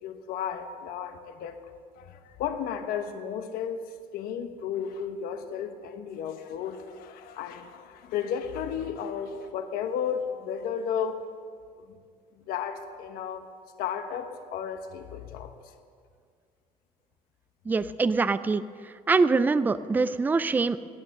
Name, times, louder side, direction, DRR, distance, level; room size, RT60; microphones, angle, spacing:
voice 1, 0.0-1.6 2.0-11.2 11.8-12.0 12.5-13.5 13.8-15.5, left 8 dB, 80° left, 7 dB, 1.1 m, -33 dB
voice 2, 17.7-18.6 19.1-20.8, right 4 dB, 10° right, 14 dB, 0.3 m, -24 dB
16.5 x 9.5 x 6.6 m, 2.1 s
cardioid pair, 150°, 15 cm